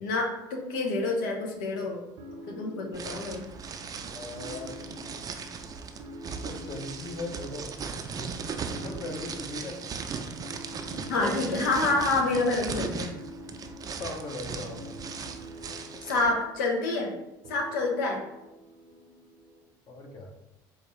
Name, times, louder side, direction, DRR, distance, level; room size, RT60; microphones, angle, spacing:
voice 1, 0.0-2.0 2.5-3.5 11.1-13.1 16.0-17.1 17.5-18.2, left 2 dB, 85° left, 1 dB, 0.7 m, -27 dB
sound 1, 2.2-19.6, equal, 65° right, 0.8 m, -47 dB
sound 2, 2.9-16.3, right 5 dB, 40° right, 0.4 m, -38 dB
voice 2, 4.0-5.0 6.4-7.8 8.2-8.3 8.6-9.8 11.2-11.4 11.8-11.9 13.9-14.9 15.9-16.0 19.9-20.3, left 2 dB, 45° left, 1 dB, 0.9 m, -39 dB
4.4 x 2.4 x 3.0 m, 0.92 s
hypercardioid pair, 70°, 10 cm